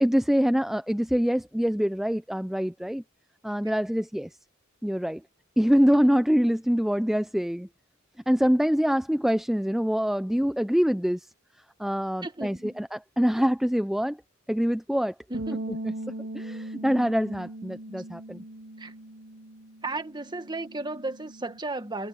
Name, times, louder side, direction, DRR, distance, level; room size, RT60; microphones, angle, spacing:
voice 1, 0.0-3.0 3.4-4.3 4.8-5.2 5.6-7.7 8.3-11.2 11.8-14.2 14.5-15.1 16.3-18.4, equal, ahead, 0.4 m, -24 dB
voice 2, 12.2-12.8 15.3-15.7 18.8-18.9 19.8-22.1, right 2 dB, 20° right, 1.5 m, -34 dB
sound 1, 15.3-21.6, right 1 dB, 50° right, 0.9 m, -39 dB
head